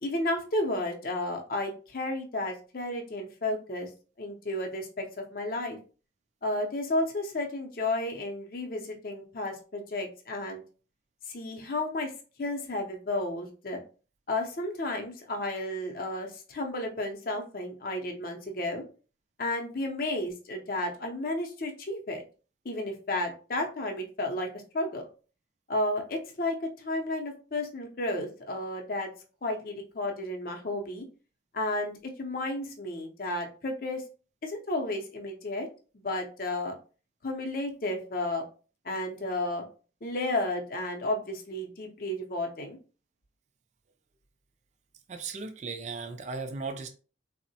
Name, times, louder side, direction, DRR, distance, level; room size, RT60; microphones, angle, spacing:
voice 1, 0.0-3.9 4.2-5.8 6.4-10.6 11.3-12.1 12.4-13.8 14.3-18.8 19.4-22.2 22.6-24.5 24.7-25.1 25.7-29.1 29.4-31.0 31.5-34.0 34.4-35.7 35.9-36.8 37.2-38.4 38.8-39.6 40.0-42.8, left 1 dB, 50° left, 0.6 m, -32 dB
voice 2, 45.1-46.9, right 4 dB, 40° right, 0.3 m, -36 dB
3.6 x 2.0 x 2.7 m
head